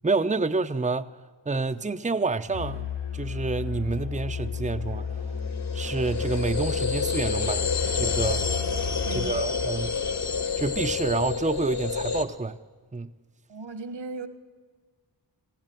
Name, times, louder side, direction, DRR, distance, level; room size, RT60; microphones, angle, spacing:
voice 1, 0.0-1.2 1.5-2.9 3.1-5.1 5.7-7.7 7.9-8.4 9.1-9.9 10.6-12.6 12.9-13.1, right 3 dB, 15° right, 0.8 m, -28 dB
Musical instrument, 2.5-9.4, left 6 dB, 80° left, 6.0 m, -33 dB
sound 1, 4.3-12.2, left 5 dB, 55° left, 2.4 m, -29 dB
voice 2, 9.0-9.5 13.5-14.3, right 3 dB, 75° right, 2.1 m, -37 dB
20.5 x 15.5 x 9.1 m
cardioid pair, 40°, 46 cm